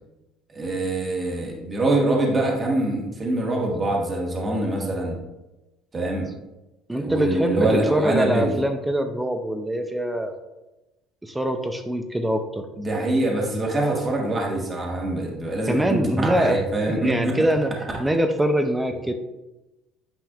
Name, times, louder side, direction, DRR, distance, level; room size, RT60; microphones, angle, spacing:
voice 1, 0.5-5.1 5.9-6.3 6.9-8.5 12.8-17.5, right 1 dB, 25° right, -1 dB, 1.4 m, -24 dB
voice 2, 6.9-10.3 11.2-12.7 15.7-17.7 18.0-19.1, right 1 dB, 5° right, 6 dB, 0.5 m, -24 dB
8.8 x 5.2 x 2.4 m, 1.0 s
cardioid pair, 130°, 0 cm